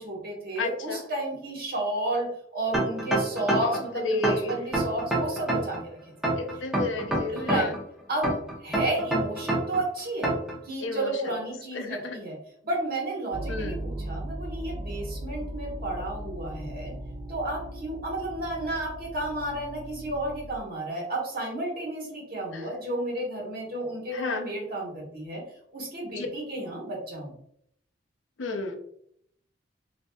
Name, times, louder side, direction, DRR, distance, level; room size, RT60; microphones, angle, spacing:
voice 1, 0.0-5.8 7.3-7.7 8.1-10.3 10.6-12.4 12.6-16.9 17.3-25.4 25.7-27.3, right 1 dB, 55° right, -3 dB, 1.3 m, -32 dB
voice 2, 0.6-1.0 3.6-3.8 4.0-4.5 6.4-7.7 10.8-11.1 11.7-12.1 13.5-13.8 15.4-15.5 24.1-24.4 26.1-26.3 28.4-28.8, left 3 dB, 80° left, 5 dB, 0.6 m, -31 dB
sound 1, 2.7-3.8 4.2-5.8 6.2-7.8 8.2-9.8 10.2-10.5, right 1 dB, 5° right, 0.9 m, -26 dB
sound 2, 13.3-20.6, right 1 dB, 25° right, 0.3 m, -38 dB
4.2 x 2.7 x 2.3 m, 0.70 s
head